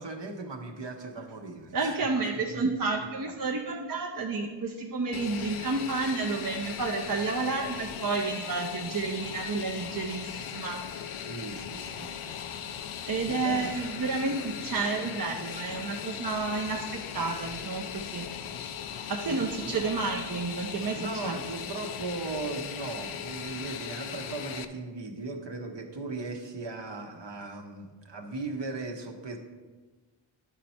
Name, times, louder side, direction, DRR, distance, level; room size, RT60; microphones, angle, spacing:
voice 1, 0.0-2.0 2.5-2.6 11.2-12.4 13.3-13.7 19.2-19.8 20.9-29.4, right 3 dB, 60° right, 3 dB, 1.1 m, -38 dB
voice 2, 1.7-10.8 13.1-18.3 19.1-21.4, right 3 dB, 45° right, 0 dB, 0.7 m, -31 dB
Fixed-wing aircraft airplane, 5.1-24.6, left 8 dB, 80° left, 0.6 m, -38 dB
10.5 x 4.3 x 4.2 m, 1.3 s
wide cardioid pair, 50°, 49 cm